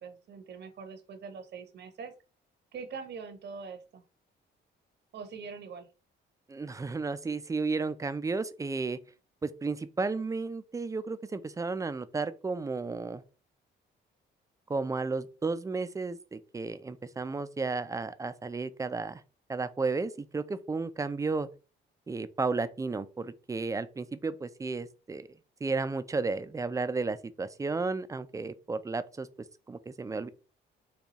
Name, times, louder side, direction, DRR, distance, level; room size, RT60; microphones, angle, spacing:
voice 1, 0.0-2.1 2.7-4.0 5.1-5.9, right 5 dB, 60° right, 0.8 m, -43 dB
voice 2, 6.5-9.0 9.4-13.2 14.7-19.2 19.5-21.5 22.1-25.3 25.6-29.3 29.7-30.3, right 4 dB, 15° right, 0.3 m, -33 dB
4.3 x 2.3 x 2.9 m
cardioid pair, 90°, 20 cm